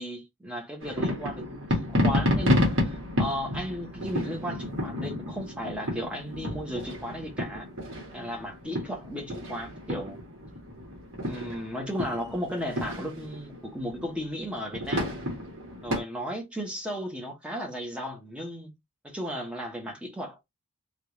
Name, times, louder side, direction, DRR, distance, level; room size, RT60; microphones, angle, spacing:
voice 1, 0.0-7.7 8.1-10.2 11.2-15.1 15.8-18.7 19.0-20.4, equal, 5° right, 0.8 m, -35 dB
sound 1, 0.8-16.0, left 1 dB, 55° right, 1.4 m, -31 dB
3.5 x 2.4 x 3.0 m
head